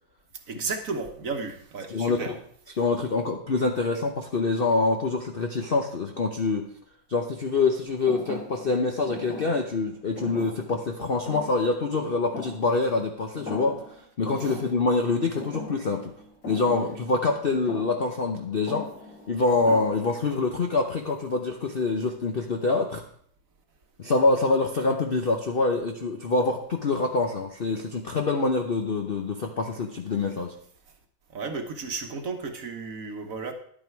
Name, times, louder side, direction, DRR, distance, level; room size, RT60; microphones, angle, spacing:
voice 1, 0.5-2.3 14.4-14.6 31.3-33.5, right 4 dB, 50° right, 5 dB, 1.3 m, -33 dB
voice 2, 1.9-2.4 2.8-6.7 7.1-16.1 16.5-18.9 19.3-23.0 24.0-30.5, left 3 dB, 85° left, 3 dB, 0.5 m, -25 dB
Thump thud, 8.1-13.1 13.3-14.0 14.3-20.4, left 3 dB, 60° left, 3.6 m, -40 dB
10.5 x 9.0 x 4.6 m, 0.63 s
omnidirectional pair, 2.2 m